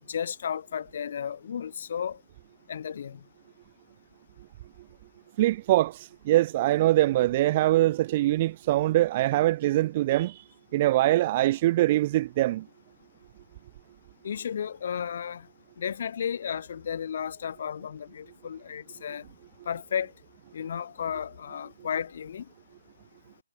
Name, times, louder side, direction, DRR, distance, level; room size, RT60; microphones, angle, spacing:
voice 1, 0.0-2.2 2.7-3.2 14.2-15.5 15.8-19.2 19.7-20.1 20.5-22.5, left 8 dB, 50° left, 2.4 m, -33 dB
voice 2, 5.4-10.4 10.7-12.6, right 15 dB, 30° right, 1.0 m, -23 dB
figure-of-eight pair, 150°, 0 cm